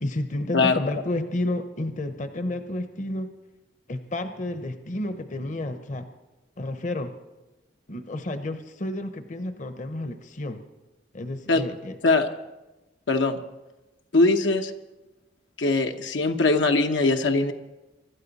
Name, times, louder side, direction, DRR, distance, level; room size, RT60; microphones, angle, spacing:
voice 1, 0.0-3.3 3.9-6.0 6.6-7.1 7.9-10.6 11.1-12.0, left 1 dB, 40° left, 9 dB, 0.8 m, -31 dB
voice 2, 13.1-13.4 14.1-14.7 15.6-17.5, left 3 dB, 85° left, 5 dB, 1.0 m, -21 dB
25.0 x 12.5 x 4.1 m, 1.1 s
head